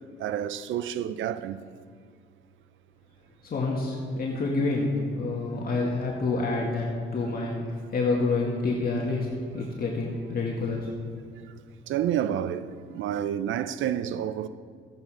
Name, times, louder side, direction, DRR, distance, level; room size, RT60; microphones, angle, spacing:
voice 1, 0.2-1.7 5.7-5.8 11.9-14.5, right 10 dB, 75° right, 0.6 m, -29 dB
voice 2, 3.4-7.5 7.9-9.3 9.5-10.9, left 3 dB, 50° left, 2.1 m, -28 dB
14.0 x 9.2 x 5.0 m
cardioid pair, 90°, 20 cm